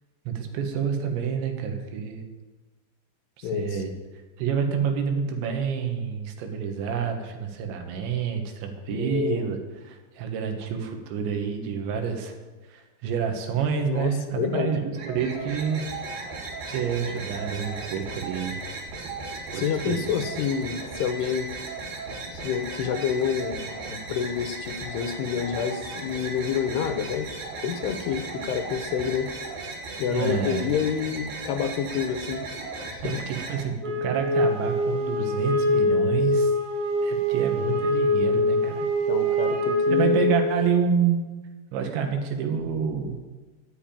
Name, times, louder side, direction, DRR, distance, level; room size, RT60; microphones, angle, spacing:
voice 1, 0.3-2.2 3.4-3.9 4.4-9.6 9.9-12.4 12.7-15.9 16.7-18.6 19.5-20.0 30.1-30.7 33.0-36.5 37.0-38.8 39.9-41.2 41.7-43.2, right 6 dB, 85° right, 4 dB, 3.7 m, -28 dB
voice 2, 3.4-3.8 8.9-9.5 13.9-14.1 14.4-14.7 19.5-21.6 22.3-27.3 27.6-29.3 30.0-32.5 32.9-33.2 38.8-40.1, left 8 dB, 75° left, 7 dB, 2.8 m, -28 dB
sound 1, 14.9-33.6, right 3 dB, 60° right, 3.7 m, -36 dB
Wind instrument woodwind instrument, 33.8-40.6, left 1 dB, 35° right, 2.3 m, -24 dB
12.0 x 8.0 x 8.8 m, 1.3 s
omnidirectional pair, 5.1 m